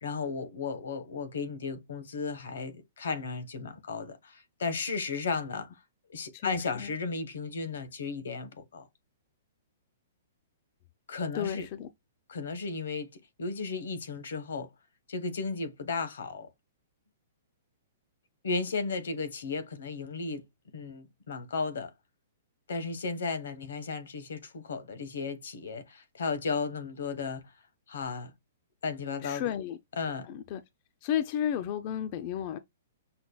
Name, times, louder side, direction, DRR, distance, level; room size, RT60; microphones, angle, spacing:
voice 1, 0.0-5.7 6.1-8.9 11.1-11.7 12.3-13.1 13.4-14.7 15.1-16.5 18.4-20.4 20.7-21.9 22.7-27.5 27.9-28.3 28.8-29.4 30.0-30.3, left 4 dB, 85° left, 0.9 m, -34 dB
voice 2, 6.3-6.9 11.3-11.9 29.2-29.8 30.2-30.6 31.0-32.6, left 9 dB, 35° left, 0.3 m, -33 dB
5.7 x 2.2 x 2.2 m
hypercardioid pair, 160°, 0 cm